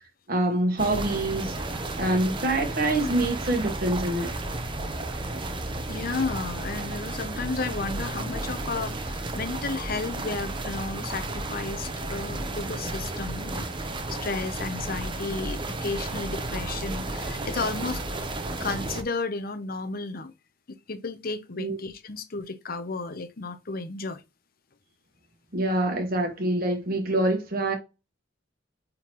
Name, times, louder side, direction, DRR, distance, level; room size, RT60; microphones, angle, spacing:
voice 1, 0.3-1.5 2.0-4.3 21.6-21.8 25.5-27.7, right 1 dB, 45° right, 1.2 m, -25 dB
sound 1, 0.8-19.0, right 2 dB, 25° right, 0.8 m, -33 dB
voice 2, 5.9-13.7 14.1-18.0 18.5-20.3 20.7-24.2, left 3 dB, 45° left, 0.8 m, -33 dB
8.8 x 3.7 x 3.0 m
head